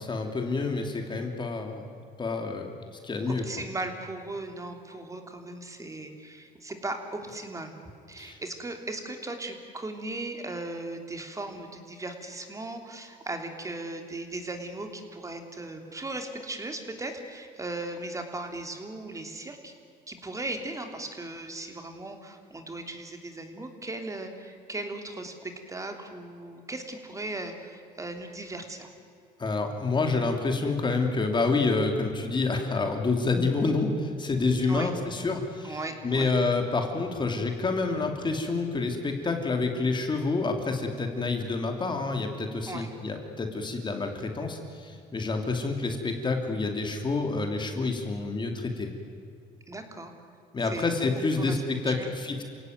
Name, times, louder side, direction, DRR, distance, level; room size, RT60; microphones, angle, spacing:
voice 1, 0.0-1.9 2.2-2.8 3.0-3.4 8.2-8.4 29.4-35.8 36.0-48.9 50.5-52.4, left 3 dB, 25° left, 4 dB, 2.8 m, -28 dB
voice 2, 3.3-7.8 8.1-19.7 20.1-28.9 34.7-34.9 35.6-36.3 42.7-42.9 49.7-50.1 50.6-50.9 51.4-52.1, right 2 dB, 20° right, 5 dB, 3.2 m, -37 dB
28.5 x 17.5 x 9.4 m, 2.4 s
cardioid pair, 110°, 17 cm